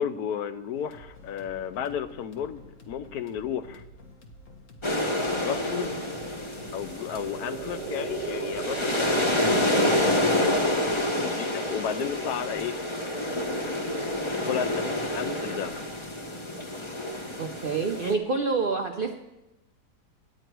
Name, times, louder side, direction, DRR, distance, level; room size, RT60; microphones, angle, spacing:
voice 1, 0.0-3.8 5.4-6.0 6.7-12.8 14.4-14.9 15.1-15.8, left 8 dB, 75° left, 10 dB, 1.1 m, -33 dB
sound 1, 0.7-11.0, left 1 dB, 55° left, 1.5 m, -50 dB
sound 2, 4.8-18.1, left 1 dB, 30° left, 0.6 m, -28 dB
sound 3, 6.5-10.7, right 7 dB, 80° right, 1.3 m, -38 dB
voice 2, 17.4-19.2, right 4 dB, 60° right, 3 dB, 0.5 m, -27 dB
11.5 x 9.0 x 4.6 m, 1.0 s
omnidirectional pair, 1.7 m